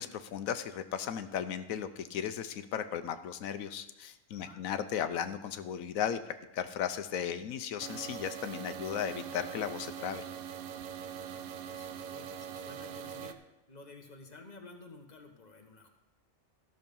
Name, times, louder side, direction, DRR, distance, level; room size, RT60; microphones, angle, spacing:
voice 1, 0.0-10.2, left 8 dB, 85° left, 11 dB, 1.1 m, -36 dB
voice 2, 4.3-4.6 11.1-15.9, left 3 dB, 35° left, 4 dB, 1.3 m, -53 dB
sound 1, 7.8-13.3, right 8 dB, 75° right, 1.0 m, -42 dB
14.0 x 6.5 x 5.3 m, 0.98 s
omnidirectional pair, 1.4 m